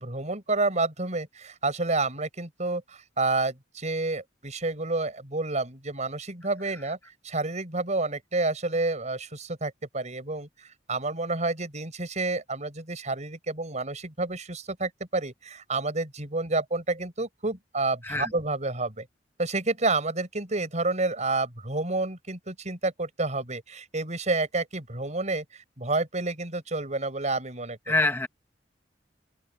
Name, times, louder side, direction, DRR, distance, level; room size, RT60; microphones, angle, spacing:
voice 1, 0.0-7.0 7.2-19.1 19.4-27.9, right 3 dB, 40° right, 5.9 m, -29 dB
voice 2, 27.9-28.3, left 2 dB, 15° left, 1.1 m, -25 dB
head